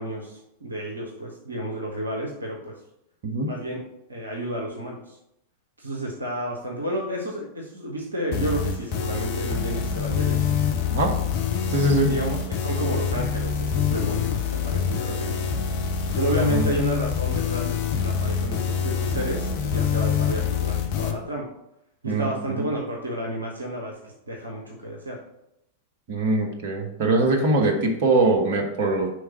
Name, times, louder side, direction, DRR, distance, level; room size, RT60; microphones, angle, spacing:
voice 1, 0.0-2.8 3.4-3.8 4.1-5.2 5.8-10.4 12.0-15.5 16.2-21.5 22.0-25.2, right 1 dB, 75° right, 0 dB, 0.8 m, -31 dB
sound 1, 8.3-21.1, left 7 dB, 45° left, 0.7 m, -26 dB
voice 2, 11.7-12.1 16.4-16.7 22.0-22.7 26.1-29.1, right 2 dB, 55° right, 1 dB, 1.1 m, -22 dB
5.1 x 3.5 x 5.6 m, 0.82 s
figure-of-eight pair, 90°, 0 cm